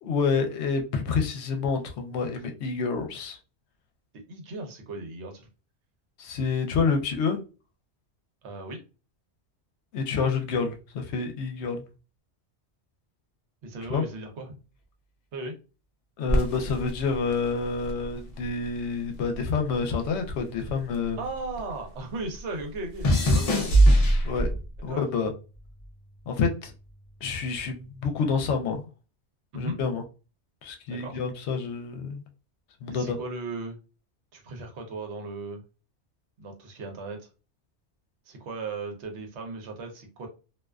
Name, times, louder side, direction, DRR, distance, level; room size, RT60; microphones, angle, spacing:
voice 1, 0.0-3.4 6.2-7.4 9.9-11.8 13.9-14.0 16.2-21.2 24.2-24.5 24.8-25.3 26.3-26.7 27.2-28.9 29.5-30.0 30.6-32.2 32.8-33.2, left 5 dB, 75° left, 0.8 m, -28 dB
voice 2, 4.3-5.5 8.4-8.8 13.6-14.6 15.3-15.5 21.2-23.7 24.9-25.1 29.5-29.8 30.9-31.2 32.9-33.8 34.3-35.6 36.4-37.2 38.3-40.3, right 3 dB, 75° right, 1.0 m, -36 dB
sound 1, 16.3-18.8 19.1-21.7 22.0-24.8 25.5-25.9, right 1 dB, 50° left, 0.4 m, -24 dB
2.4 x 2.3 x 2.2 m
omnidirectional pair, 1.2 m